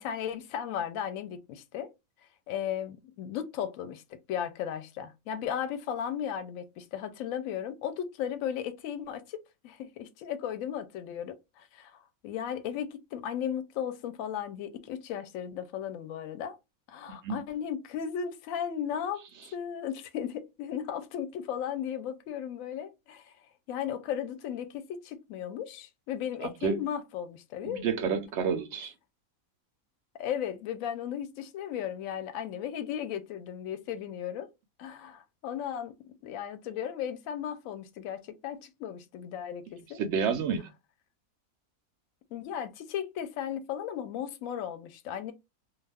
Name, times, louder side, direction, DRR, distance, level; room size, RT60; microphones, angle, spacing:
voice 1, 0.0-1.9 2.5-9.4 9.6-16.6 16.9-19.2 19.5-23.3 23.7-27.9 30.2-34.5 34.8-40.0 42.3-45.3, left 9 dB, 70° left, 0.9 m, -36 dB
voice 2, 17.1-17.4 26.4-26.8 27.6-28.9 40.0-40.7, right 6 dB, 65° right, 0.7 m, -30 dB
2.4 x 2.3 x 3.3 m
omnidirectional pair, 1.6 m